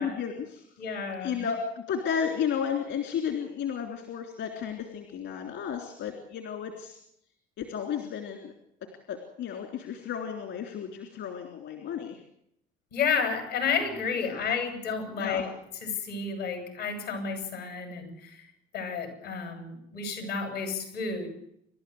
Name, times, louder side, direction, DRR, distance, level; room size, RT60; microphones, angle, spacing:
voice 1, 0.0-0.6 1.2-7.0 7.6-8.5 9.1-12.2 14.2-14.4 15.2-15.4, left 7 dB, 70° left, 5 dB, 3.5 m, -33 dB
voice 2, 0.8-1.4 12.9-15.5 15.8-18.5 18.7-21.3, left 5 dB, 90° left, 6 dB, 6.9 m, -31 dB
29.5 x 12.5 x 7.9 m, 0.73 s
supercardioid pair, 65°, 20 cm